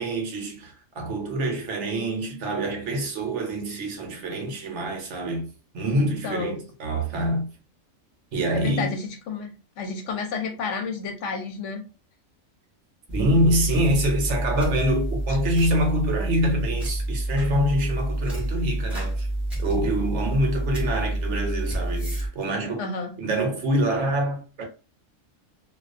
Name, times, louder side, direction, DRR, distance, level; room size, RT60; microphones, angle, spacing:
voice 1, 0.0-7.6 8.3-8.9 13.1-19.3 19.6-22.9 23.2-24.6, right 1 dB, 65° right, 0.9 m, -25 dB
voice 2, 6.2-6.6 8.5-11.8 22.8-23.1, left 4 dB, 70° left, 0.8 m, -31 dB
sound 1, 13.1-22.3, right 1 dB, ahead, 0.8 m, -28 dB
2.3 x 2.2 x 2.4 m
omnidirectional pair, 1.4 m